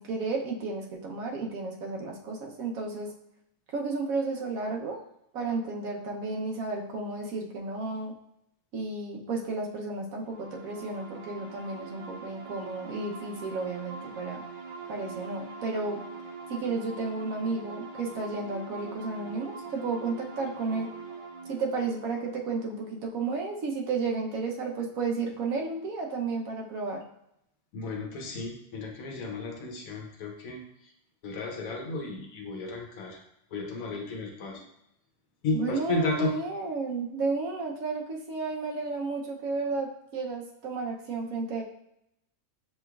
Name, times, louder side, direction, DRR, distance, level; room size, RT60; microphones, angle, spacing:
voice 1, 0.0-3.1 3.7-5.0 5.3-8.1 8.7-14.4 14.9-16.0 16.5-20.9 21.5-27.0 35.5-41.6, right 3 dB, 85° right, 0 dB, 1.2 m, -32 dB
sound 1, 10.2-23.7, right 4 dB, 45° right, 0.8 m, -43 dB
voice 2, 27.7-30.9 31.2-33.2 33.5-34.6 35.4-36.4, left 3 dB, 90° left, 1 dB, 1.2 m, -33 dB
6.8 x 3.1 x 2.3 m, 0.77 s
omnidirectional pair, 1.4 m